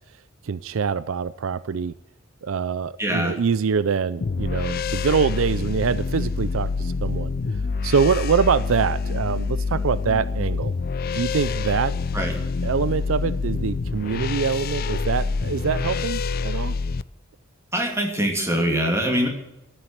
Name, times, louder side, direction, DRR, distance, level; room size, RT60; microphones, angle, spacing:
voice 1, 0.4-1.9 2.4-7.3 7.8-10.7 11.1-11.9 12.6-16.8, right 6 dB, 70° right, 16 dB, 0.5 m, -24 dB
voice 2, 3.0-3.4 12.1-12.3 17.7-19.3, equal, 15° right, 1 dB, 2.9 m, -23 dB
sound 1, 4.2-17.0, left 4 dB, 45° left, 0.4 m, -26 dB
14.0 x 9.1 x 9.3 m, 0.90 s
head